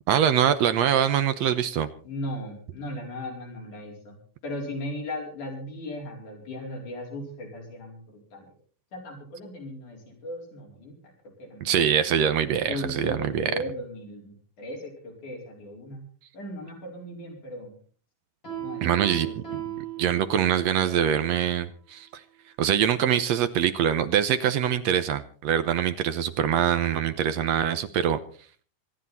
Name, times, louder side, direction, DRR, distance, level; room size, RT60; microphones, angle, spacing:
voice 1, 0.1-1.9 11.7-13.5 18.8-19.4 20.0-22.2 22.6-28.2, right 9 dB, 70° right, 11 dB, 1.8 m, -24 dB
voice 2, 2.0-4.2 4.4-8.4 8.9-11.0 11.4-12.1 12.6-16.0 16.3-17.7 18.6-20.4, left 1 dB, 70° left, -1 dB, 6.0 m, -37 dB
Piano, 18.4-20.7, right 12 dB, 35° left, 8.1 m, -36 dB
26.0 x 10.0 x 4.2 m, 0.43 s
omnidirectional pair, 3.7 m